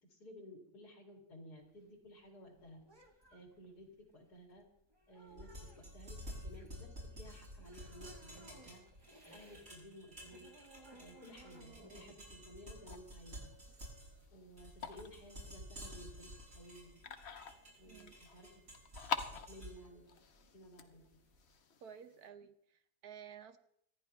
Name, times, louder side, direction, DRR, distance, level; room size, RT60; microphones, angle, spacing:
voice 1, 0.0-2.8 3.3-4.6 5.1-10.5 11.0-13.5 14.3-17.0 17.8-18.5 19.3-20.1 20.5-21.0, equal, 70° left, 1 dB, 3.3 m, -56 dB
sound 1, 1.6-9.7 10.0-13.7, right 1 dB, 15° right, 1.5 m, -61 dB
sound 2, 5.3-21.4, equal, 55° right, 7.5 m, -52 dB
sound 3, 12.9-22.3, left 6 dB, 50° left, 1.0 m, -47 dB
voice 2, 21.8-23.6, right 8 dB, 70° right, 10 dB, 1.3 m, -53 dB
25.5 x 10.5 x 3.3 m, 0.72 s
omnidirectional pair, 1.8 m